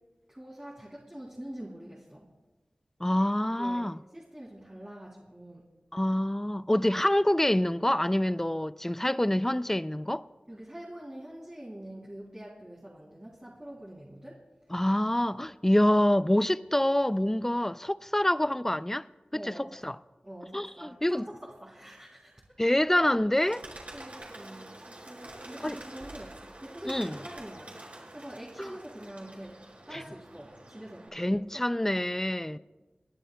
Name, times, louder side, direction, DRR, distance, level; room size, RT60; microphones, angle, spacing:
voice 1, 0.3-2.3 3.4-5.7 10.5-14.4 19.3-19.8 20.2-22.6 23.9-27.8 28.1-29.6 29.8-31.6, right 1 dB, 20° right, 3.1 m, -45 dB
voice 2, 3.0-4.0 5.9-10.3 14.7-19.0 19.4-20.0 20.5-21.3 22.6-23.6 25.6-25.8 26.8-27.2 31.1-32.6, left 1 dB, 10° left, 0.4 m, -26 dB
Bird, 23.4-31.1, right 1 dB, 50° right, 4.7 m, -47 dB
29.0 x 11.0 x 2.3 m
cardioid pair, 40°, 3 cm